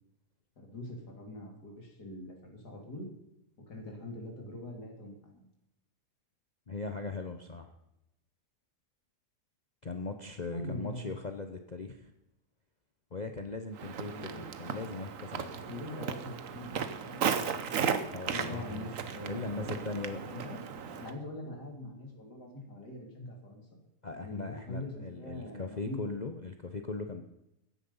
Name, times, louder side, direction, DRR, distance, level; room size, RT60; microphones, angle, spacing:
voice 1, 0.6-3.1 3.7-5.5 10.5-11.0 14.1-14.5 15.6-17.9 18.3-20.6 20.9-23.7 24.2-26.1, left 1 dB, 80° left, 1 dB, 3.6 m, -43 dB
voice 2, 6.7-7.7 9.8-12.1 13.1-15.5 18.1-18.9 19.3-20.2 24.0-27.2, left 3 dB, 35° left, 6 dB, 0.9 m, -39 dB
Walk footsteps, 13.7-21.1, right 7 dB, 55° right, 1.3 m, -36 dB
15.0 x 10.5 x 5.5 m, 0.85 s
omnidirectional pair, 1.7 m